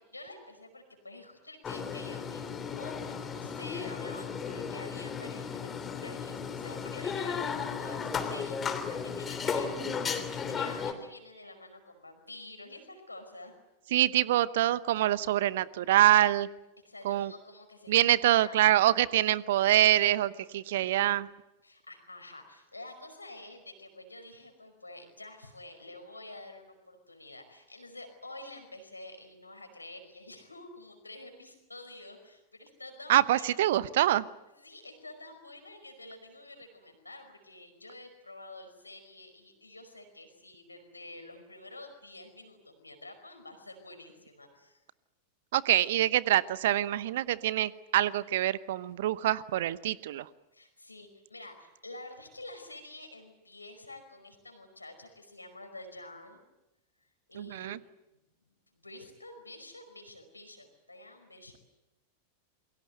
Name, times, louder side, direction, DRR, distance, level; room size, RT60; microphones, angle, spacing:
voice 1, 0.0-13.5 16.8-18.7 21.6-33.6 34.5-44.8 50.5-56.4 57.3-57.9 58.5-61.6, left 2 dB, 80° left, 6 dB, 5.2 m, -49 dB
sound 1, 1.6-10.9, left 6 dB, 20° left, 3.2 m, -35 dB
voice 2, 13.9-16.5 17.0-17.3 17.9-21.3 33.1-34.3 45.5-50.3 57.4-57.8, right 13 dB, 55° right, 18 dB, 0.9 m, -25 dB
28.5 x 22.5 x 7.9 m, 0.94 s
figure-of-eight pair, 90°, 0 cm